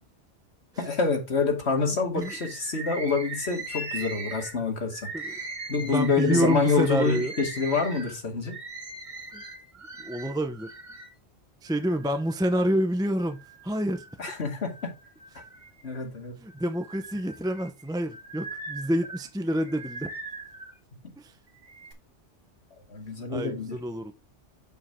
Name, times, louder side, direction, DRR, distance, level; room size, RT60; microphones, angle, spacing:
voice 1, 0.8-5.1 5.7-8.5 14.2-14.7 15.8-16.4 22.9-23.8, left 4 dB, 65° left, 2.5 m, -27 dB
Bird, 2.2-11.1 11.7-12.6 13.2-14.2 14.6-16.0 16.5-20.8 21.5-21.9, right 2 dB, 40° right, 1.8 m, -40 dB
voice 2, 5.7-7.3 9.3-9.4 10.0-10.7 11.6-14.0 16.4-20.1 21.2-21.3 23.3-24.1, equal, 5° right, 0.5 m, -28 dB
7.0 x 6.3 x 3.6 m
omnidirectional pair, 1.2 m